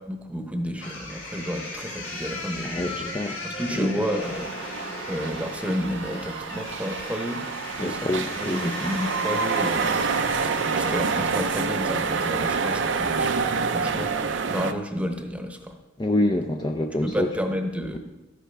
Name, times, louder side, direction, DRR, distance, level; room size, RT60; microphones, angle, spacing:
voice 1, 0.1-3.1 3.4-7.4 7.8-9.9 10.7-15.8 17.0-18.0, equal, 5° right, 5 dB, 0.9 m, -31 dB
sound 1, 0.8-11.8, left 2 dB, 80° left, 3.2 m, -37 dB
voice 2, 2.6-3.4 3.8-3.9 7.8-8.7 16.0-17.3 17.9-18.0, left 1 dB, 20° left, 5 dB, 0.5 m, -26 dB
sound 2, 4.2-14.7, right 5 dB, 65° right, 0.6 m, -27 dB
12.5 x 10.0 x 3.4 m, 1.1 s
head